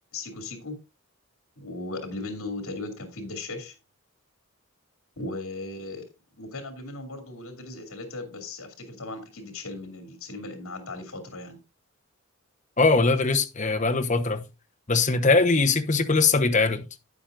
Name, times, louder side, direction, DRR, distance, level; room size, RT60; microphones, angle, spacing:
voice 1, 0.1-0.8 1.6-3.7 5.2-6.1 6.4-11.6, left 2 dB, 80° left, 2.7 m, -37 dB
voice 2, 12.8-14.4 14.9-16.8, left 3 dB, 35° left, 1.0 m, -21 dB
12.0 x 8.8 x 2.5 m
head